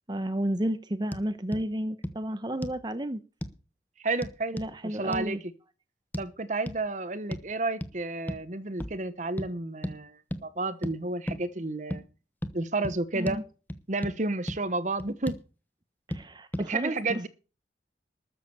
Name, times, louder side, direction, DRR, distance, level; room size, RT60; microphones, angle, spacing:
voice 1, 0.1-3.2 4.5-5.4 13.1-13.4 16.1-17.2, right 1 dB, 25° right, 0.9 m, -32 dB
sound 1, 1.1-1.2 1.5-1.6 2.0-2.2 2.6-2.8 3.4-3.6 4.2-4.7 5.1-5.3 6.1-6.3 6.7-6.8 7.3-7.5 7.8-7.9 8.3-8.5 8.8-9.0 9.4-9.5 9.8-10.0 10.3-10.4 10.8-11.0 11.3-11.4 11.9-12.0 12.4-12.6 12.8-13.0 13.3-13.4 13.7-14.2 14.5-14.6 15.0-15.4 16.1-16.2 16.5-16.7, equal, 10° left, 1.0 m, -34 dB
voice 2, 4.0-5.5 6.2-12.0 12.5-13.4 13.9-15.4 16.7-17.3, right 2 dB, 45° right, 1.1 m, -31 dB
13.0 x 7.5 x 6.9 m
head